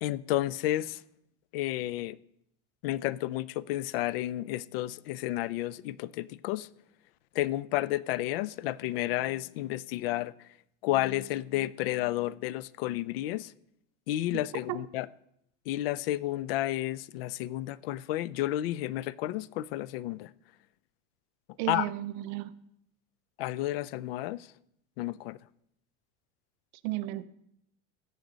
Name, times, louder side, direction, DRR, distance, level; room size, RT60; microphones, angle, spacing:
voice 1, 0.0-1.0 1.5-2.2 2.8-6.7 7.3-10.3 10.8-13.5 14.1-15.1 15.7-20.3 21.7-21.9 23.4-24.5 25.0-25.4, left 15 dB, 80° left, 0.5 m, -31 dB
voice 2, 21.6-22.5 26.8-27.2, right 15 dB, 50° right, 0.6 m, -33 dB
14.5 x 8.3 x 3.9 m
supercardioid pair, 170°, 29 cm